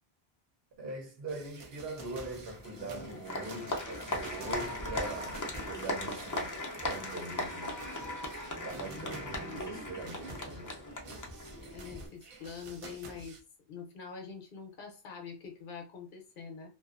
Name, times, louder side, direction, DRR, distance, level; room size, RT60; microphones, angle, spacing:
voice 1, 0.8-6.6 6.8-7.8 8.5-10.8, right 2 dB, 75° right, 0.9 m, -42 dB
sound 1, 1.3-13.4, right 3 dB, 50° right, 0.4 m, -51 dB
Applause, 2.0-12.1, left 1 dB, 35° left, 0.3 m, -38 dB
voice 2, 11.7-13.4 13.7-16.7, left 6 dB, 60° left, 0.7 m, -45 dB
2.5 x 2.3 x 2.4 m
omnidirectional pair, 1.0 m